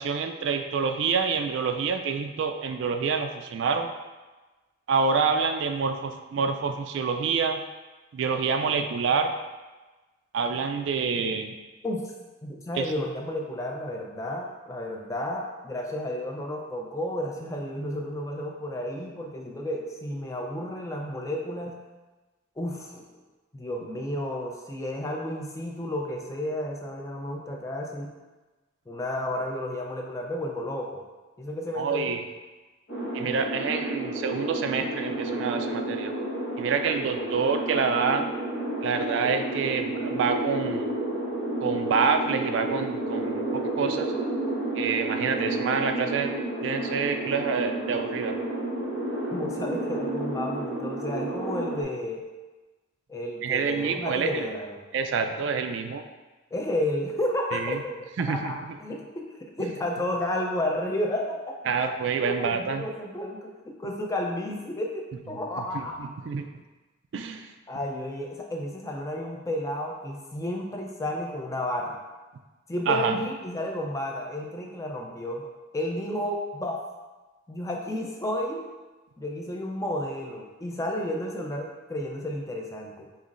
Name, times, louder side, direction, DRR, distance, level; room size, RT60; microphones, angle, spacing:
voice 1, 0.0-3.9 4.9-7.6 8.1-9.3 10.3-11.6 12.8-12.9 31.8-32.2 33.1-36.1 36.6-38.3 38.8-40.9 41.6-44.1 44.7-46.3 46.6-48.3 53.4-54.5 54.9-56.0 57.5-57.8 58.2-58.6 61.7-62.9 65.7-66.5 67.1-67.5 72.9-73.2, right 5 dB, 65° right, 6 dB, 0.3 m, -27 dB
voice 2, 12.4-21.7 22.6-23.0 23.5-28.1 28.9-31.0 31.4-32.1 49.3-52.3 53.1-54.8 56.5-58.0 58.3-61.6 62.2-66.1 67.7-72.0 72.7-76.8 77.5-78.6 79.2-83.1, left 1 dB, 15° left, 0 dB, 0.4 m, -32 dB
sound 1, 32.9-51.8, right 1 dB, 75° left, 1.3 m, -31 dB
5.5 x 3.0 x 2.5 m, 1.2 s
head